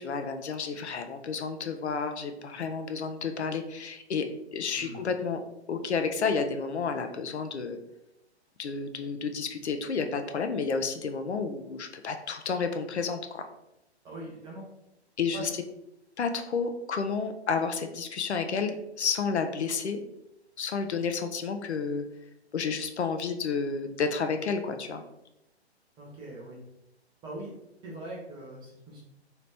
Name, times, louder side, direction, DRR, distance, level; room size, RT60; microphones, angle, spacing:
voice 1, 0.0-4.3 4.5-5.4 5.7-7.8 8.6-13.5 15.2-15.6 16.2-20.0 20.6-22.1 22.5-25.0, left 5 dB, 75° left, 7 dB, 0.5 m, -31 dB
voice 2, 14.0-14.6 15.3-15.5 26.0-26.6 27.2-27.5 27.8-29.0, right 1 dB, 15° right, -4 dB, 0.8 m, -41 dB
2.9 x 2.8 x 3.3 m, 0.86 s
figure-of-eight pair, 125°, 33 cm